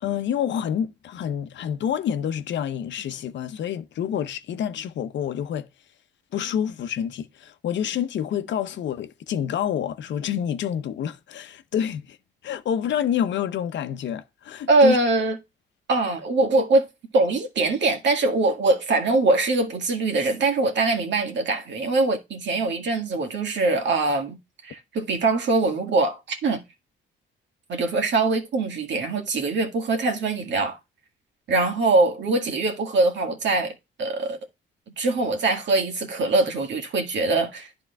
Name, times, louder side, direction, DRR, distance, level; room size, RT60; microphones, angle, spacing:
voice 1, 0.0-5.7 6.3-12.2 12.4-15.0, left 9 dB, 65° left, 0.8 m, -28 dB
voice 2, 14.7-15.4 15.9-16.8 17.1-24.4 24.6-26.6 27.7-30.8 31.5-33.7 34.0-34.4 35.0-37.7, right 3 dB, 65° right, 1.9 m, -22 dB
11.0 x 3.8 x 3.4 m
cardioid pair, 90°, 20 cm